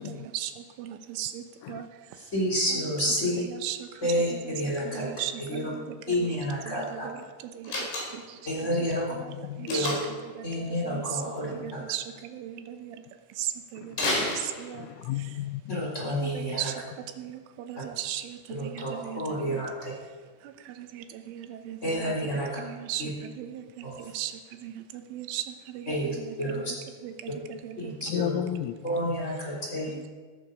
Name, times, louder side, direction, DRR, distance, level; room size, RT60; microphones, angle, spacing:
voice 1, 0.0-1.9 2.7-2.9 3.4-13.0 13.4-14.9 15.2-15.3 16.0-19.6 20.4-22.3 22.6-26.7 27.0-28.2 29.9-30.1, right 11 dB, 80° right, 8 dB, 3.3 m, -38 dB
voice 2, 2.3-3.4 4.0-5.1 5.5-5.7 6.1-7.1 8.5-9.0 9.7-10.0 10.4-11.8 15.7-16.7 18.5-19.9 21.8-22.5 23.0-23.1 23.8-23.9 25.9-26.7 27.8-28.4 28.8-29.9, equal, 15° left, -3 dB, 3.0 m, -29 dB
Slam, 7.6-8.4 9.7-10.3 13.9-15.0, left 2 dB, 60° left, 6.6 m, -30 dB
voice 3, 9.3-9.7 11.5-11.6 13.8-13.9 14.7-16.3 28.1-28.9, left 13 dB, 85° left, 13 dB, 3.3 m, -34 dB
17.5 x 14.0 x 5.0 m, 1.5 s
omnidirectional pair, 5.9 m